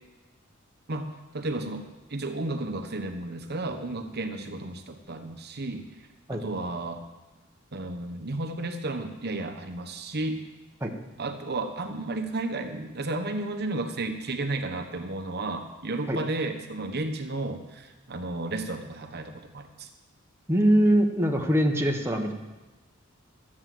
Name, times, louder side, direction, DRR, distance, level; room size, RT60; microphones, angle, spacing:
voice 1, 0.9-1.8 2.1-5.8 6.3-7.0 7.7-10.4 11.2-19.9, right 2 dB, 50° right, 6 dB, 1.2 m, -33 dB
voice 2, 20.5-22.3, right 1 dB, 10° right, 1 dB, 1.1 m, -22 dB
13.0 x 8.7 x 7.7 m, 1.1 s
head